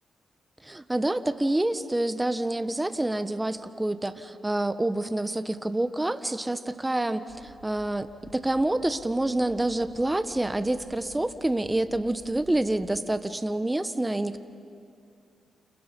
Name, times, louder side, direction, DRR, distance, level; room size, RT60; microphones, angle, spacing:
voice 1, 0.6-8.1 8.3-14.4, right 1 dB, 20° right, 11 dB, 1.4 m, -27 dB
sound 1, 7.3-13.1, right 5 dB, 85° right, 1.7 m, -53 dB
30.0 x 29.0 x 5.5 m, 2.4 s
supercardioid pair, 45°, 0 cm